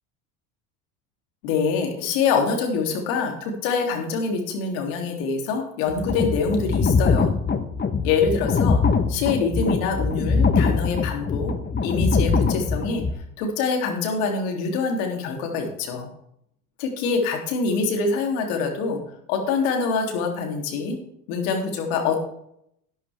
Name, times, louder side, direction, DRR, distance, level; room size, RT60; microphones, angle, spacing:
voice 1, 1.4-7.3 8.0-8.8 9.1-11.5 11.8-13.0 13.4-16.1 16.8-19.0 19.3-21.0 21.3-22.2, left 5 dB, 70° left, 2 dB, 3.3 m, -25 dB
sound 1, 5.9-13.1, left 4 dB, 25° left, 1.3 m, -22 dB
12.5 x 10.5 x 3.6 m, 0.74 s
hypercardioid pair, 80°, 44 cm